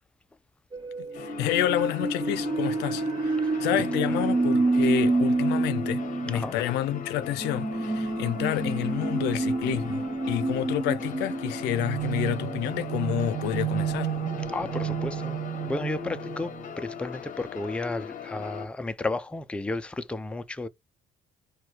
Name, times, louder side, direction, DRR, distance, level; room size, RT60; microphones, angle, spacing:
sound 1, 0.7-17.0, right 3 dB, 30° right, 1.2 m, -29 dB
voice 1, 1.0-14.3, left 12 dB, 90° left, 0.5 m, -29 dB
sound 2, 1.1-18.7, left 8 dB, 50° left, 0.7 m, -40 dB
voice 2, 14.5-20.7, left 2 dB, 5° left, 0.4 m, -33 dB
4.5 x 2.3 x 4.3 m
cardioid pair, 110°, 17 cm